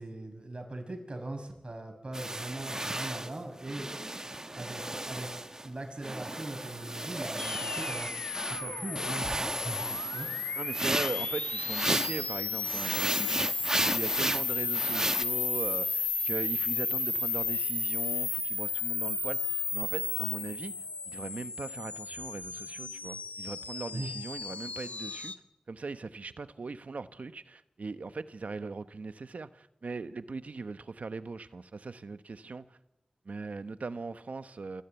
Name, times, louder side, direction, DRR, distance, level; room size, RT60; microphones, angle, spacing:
voice 1, 0.0-3.9 4.5-5.3 5.6-8.2 8.5-9.8 10.1-10.3 23.9-24.1, right 2 dB, 45° right, 6.4 m, -40 dB
sound 1, 2.1-5.7 6.0-8.6 9.0-12.3 12.6-15.2, right 1 dB, 25° right, 1.1 m, -34 dB
sound 2, 7.4-25.3, left 4 dB, 75° left, 1.2 m, -33 dB
voice 2, 10.6-20.7 21.1-25.3 25.7-32.8 33.2-34.8, right 4 dB, 75° right, 1.0 m, -40 dB
25.5 x 16.0 x 9.2 m
wide cardioid pair, 60°, 2 cm